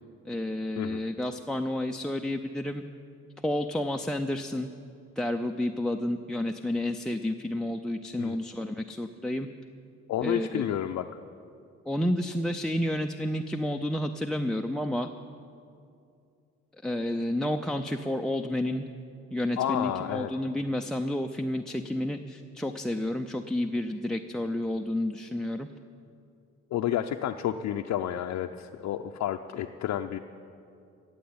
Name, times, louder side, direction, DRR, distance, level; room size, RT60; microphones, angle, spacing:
voice 1, 0.3-2.8 3.4-4.7 5.2-9.5 10.2-10.8 11.9-15.1 16.8-18.9 19.3-25.7, left 1 dB, ahead, 7 dB, 0.4 m, -30 dB
voice 2, 10.1-11.0 19.6-20.3 26.7-30.2, left 11 dB, 65° left, 4 dB, 0.6 m, -30 dB
15.0 x 7.6 x 8.6 m, 2.5 s
cardioid pair, 90°, 30 cm